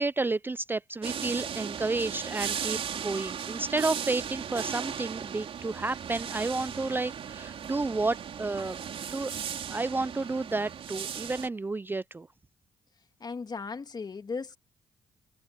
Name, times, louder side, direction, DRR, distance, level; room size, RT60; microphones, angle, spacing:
voice 1, 0.0-8.8 9.1-9.3 9.7-12.3, right 3 dB, 20° right, 0.5 m, -31 dB
sound 1, 1.0-11.5, right 8 dB, 60° right, 4.2 m, -37 dB
voice 2, 13.2-14.6, left 4 dB, 40° left, 2.2 m, -36 dB
supercardioid pair, 65°, 11 cm